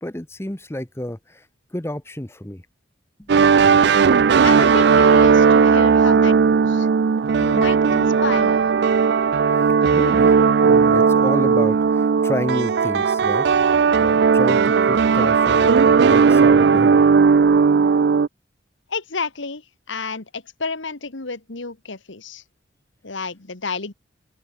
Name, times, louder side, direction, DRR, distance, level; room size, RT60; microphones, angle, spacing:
voice 1, 0.0-1.5 1.7-2.6 3.2-3.3 9.5-10.3 10.6-13.5 13.7-17.0, left 1 dB, 15° left, 0.9 m, -30 dB
sound 1, 3.3-18.3, right 5 dB, 55° right, 0.4 m, -16 dB
voice 2, 4.4-6.9 7.4-8.6 18.9-22.4 23.0-23.9, left 4 dB, 75° left, 1.7 m, -30 dB
open air
head